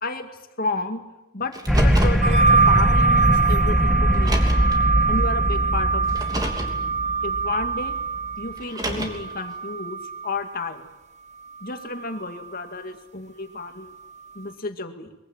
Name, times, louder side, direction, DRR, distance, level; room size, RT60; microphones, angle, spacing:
voice 1, 0.6-1.0 1.3-4.4 5.1-6.3 7.2-7.9 8.4-10.9 11.6-13.9 14.3-15.2, left 3 dB, 45° left, 6 dB, 2.3 m, -31 dB
Car, 1.5-2.3 3.3-3.4 4.1-4.8 6.1-6.8 8.6-9.3, right 1 dB, 20° right, 3.1 m, -28 dB
sound 1, 1.7-8.2, equal, ahead, 2.0 m, -21 dB
sound 2, 2.2-10.6 11.6-12.5, right 4 dB, 35° right, 1.4 m, -24 dB
23.0 x 23.0 x 9.1 m, 0.96 s
head